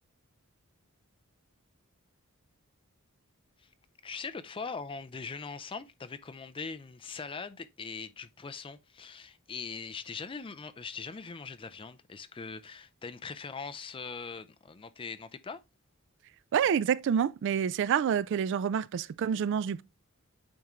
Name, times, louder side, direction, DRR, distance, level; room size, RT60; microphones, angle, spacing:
voice 1, 4.0-15.6, left 5 dB, 25° left, 0.4 m, -41 dB
voice 2, 16.5-19.8, right 8 dB, 60° right, 0.3 m, -28 dB
8.7 x 3.7 x 3.0 m
head